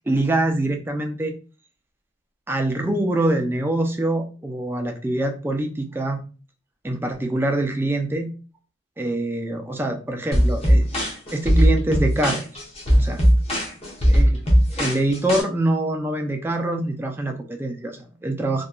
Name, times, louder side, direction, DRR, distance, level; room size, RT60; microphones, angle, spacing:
voice 1, 0.1-1.3 2.5-6.2 6.8-8.3 9.0-10.8 11.3-12.6 13.0-13.2 14.1-14.4 14.8-18.7, right 1 dB, 10° right, 4 dB, 0.3 m, -24 dB
sound 1, 10.3-15.4, equal, 30° left, 0.8 m, -19 dB
2.8 x 2.2 x 2.3 m, 0.35 s
head